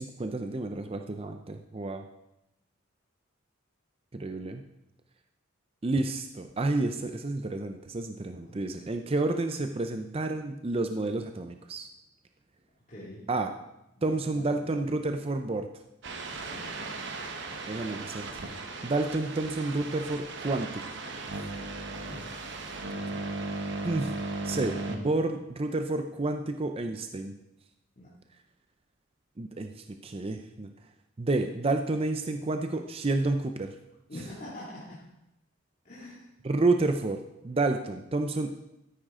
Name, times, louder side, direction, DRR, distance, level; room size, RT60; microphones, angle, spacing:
voice 1, 0.0-2.0 4.1-4.6 5.8-11.9 13.3-13.5 14.0-15.7 17.7-20.8 21.3-21.5 23.8-24.1 24.4-27.3 29.4-30.7 31.2-33.7 36.4-38.5, right 2 dB, 25° right, 6 dB, 0.5 m, -30 dB
voice 2, 12.9-13.3 14.0-14.8 16.3-17.7 22.0-22.3 22.8-23.3 28.0-28.1 34.1-35.0 35.8-36.3, left 1 dB, 40° left, -8 dB, 2.4 m, -46 dB
sound 1, 16.0-25.0, right 3 dB, 55° right, 1.1 m, -37 dB
13.0 x 9.9 x 3.7 m, 0.87 s
head